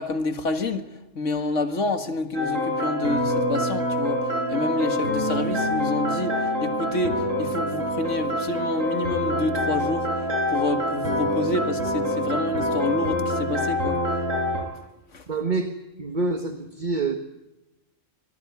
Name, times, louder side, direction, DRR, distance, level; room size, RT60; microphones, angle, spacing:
voice 1, 0.0-14.0 15.1-15.3, left 2 dB, 75° left, 7 dB, 2.1 m, -28 dB
sound 1, 2.3-14.6, equal, 90° right, 7.9 m, -26 dB
voice 2, 15.3-15.7 16.0-17.2, right 3 dB, 40° right, 6 dB, 1.5 m, -26 dB
24.0 x 18.5 x 9.5 m, 1.0 s
omnidirectional pair, 1.3 m